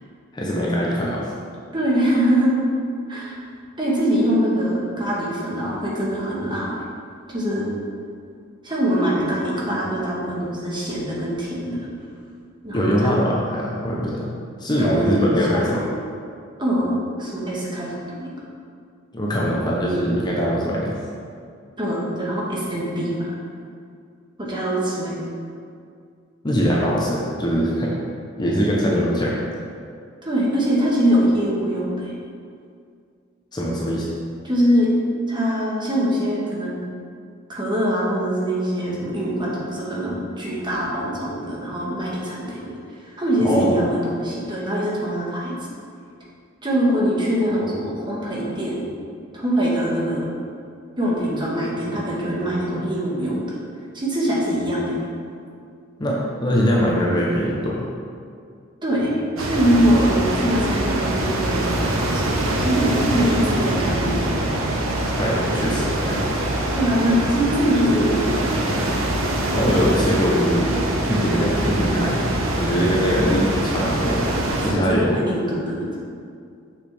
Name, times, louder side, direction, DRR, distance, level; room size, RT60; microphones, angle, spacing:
voice 1, 0.3-1.3 12.7-14.3 14.6-15.9 19.1-21.0 26.4-27.9 28.4-29.5 33.5-34.1 43.4-43.8 56.0-57.8 65.2-66.2 69.6-70.8 71.1-72.2 72.6-74.3 74.6-75.2, equal, 20° left, -4 dB, 0.7 m, -22 dB
voice 2, 1.7-2.5 3.1-3.4 3.8-6.8 7.3-7.7 8.6-11.9 12.6-13.1 14.8-15.8 16.6-18.3 21.8-23.3 24.4-25.2 30.2-32.1 34.4-34.9 35.3-36.8 37.5-42.7 43.0-45.5 46.6-48.8 49.3-50.3 51.0-53.4 53.9-55.0 58.8-64.7 66.7-68.9 74.7-75.9, equal, 25° right, -5 dB, 1.3 m, -23 dB
sound 1, 59.4-74.7, right 1 dB, 80° right, 0.9 m, -23 dB
6.2 x 5.8 x 3.4 m, 2.3 s
head